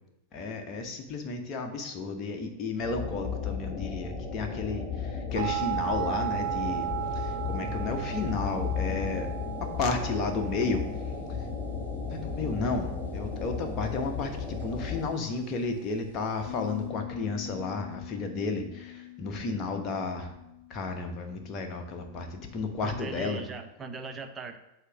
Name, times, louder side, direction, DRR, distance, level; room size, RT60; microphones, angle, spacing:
voice 1, 0.3-9.3 9.6-10.8 11.4-11.5 11.9-20.3 20.7-23.4, left 3 dB, 30° left, 4 dB, 1.1 m, -33 dB
sound 1, 2.8-15.1, left 5 dB, 10° left, 1.3 m, -35 dB
sound 2, 5.3-16.9, right 11 dB, 75° right, 1.5 m, -37 dB
Bass guitar, 16.5-22.7, left 17 dB, 50° left, 1.4 m, -45 dB
voice 2, 22.8-24.6, right 4 dB, 20° right, 7 dB, 0.7 m, -39 dB
8.1 x 2.9 x 6.0 m, 0.87 s
figure-of-eight pair, 90°, 0 cm